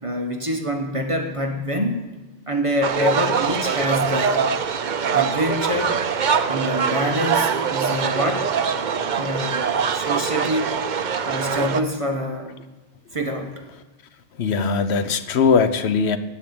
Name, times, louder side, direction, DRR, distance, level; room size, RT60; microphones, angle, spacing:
voice 1, 0.0-2.0 2.5-4.5 5.1-6.0 6.5-8.5 9.1-10.7 11.2-12.6 13.1-13.7, equal, 30° right, 3 dB, 1.3 m, -26 dB
sound 1, 2.8-11.8, right 6 dB, 50° right, 0.7 m, -23 dB
voice 2, 14.4-16.2, left 5 dB, 70° left, 11 dB, 1.1 m, -20 dB
10.5 x 9.2 x 8.6 m, 1.1 s
omnidirectional pair, 1.1 m